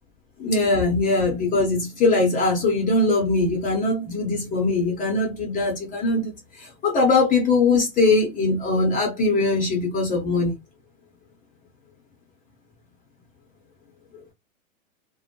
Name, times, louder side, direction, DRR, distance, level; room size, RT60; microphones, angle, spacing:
voice 1, 0.4-10.6 14.1-14.2, left 3 dB, 20° left, 0.6 m, -21 dB
2.2 x 2.1 x 2.8 m
hypercardioid pair, 110°, 39 cm